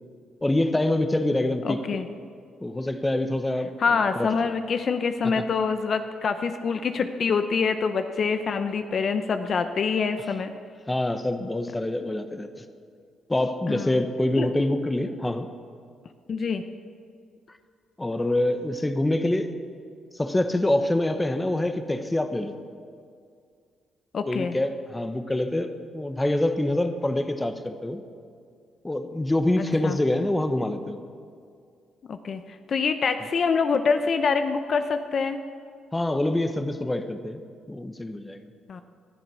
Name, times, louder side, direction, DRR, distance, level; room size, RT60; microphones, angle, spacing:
voice 1, 0.4-2.0 2.6-4.3 5.2-5.4 10.9-12.5 13.3-15.5 18.0-19.6 20.1-22.5 24.3-28.0 28.8-31.0 35.9-37.4 37.7-38.5, left 1 dB, 15° left, 9 dB, 1.1 m, -26 dB
voice 2, 1.6-2.1 3.8-10.5 13.7-14.0 14.3-14.5 16.3-16.6 24.1-24.5 29.6-30.0 32.1-32.4 32.7-35.4 38.7-38.8, left 5 dB, 50° left, 8 dB, 0.8 m, -25 dB
20.0 x 11.5 x 6.3 m, 2.2 s
cardioid pair, 90°, 0 cm